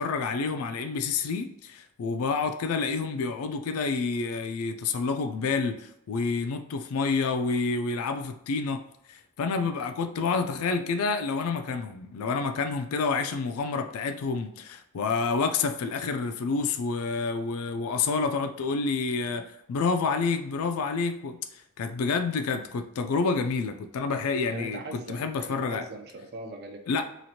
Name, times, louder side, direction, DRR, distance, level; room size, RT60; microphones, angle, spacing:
voice 1, 0.0-8.8 9.1-21.4 21.8-25.8 26.9-27.0, left 4 dB, 85° left, 7 dB, 0.4 m, -28 dB
voice 2, 24.5-26.9, right 2 dB, 45° right, 4 dB, 0.4 m, -40 dB
3.0 x 2.4 x 2.7 m, 0.79 s
head